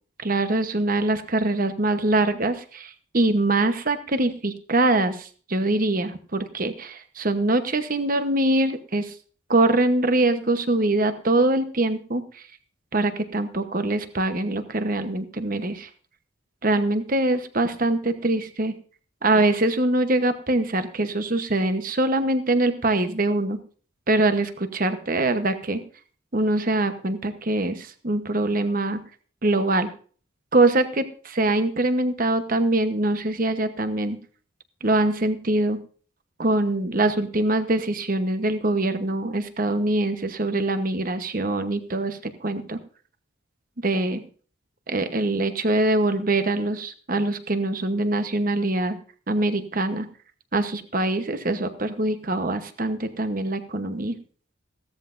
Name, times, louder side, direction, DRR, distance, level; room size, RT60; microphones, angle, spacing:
voice 1, 0.2-9.1 9.5-12.4 12.9-15.9 16.6-18.7 19.2-23.6 24.1-25.8 26.3-29.0 29.4-29.9 30.5-34.2 34.8-35.8 36.4-42.8 43.8-44.2 44.9-49.0 49.3-50.1 50.5-54.2, right 2 dB, 40° right, 9 dB, 1.0 m, -23 dB
16.0 x 13.5 x 2.6 m, 0.41 s
head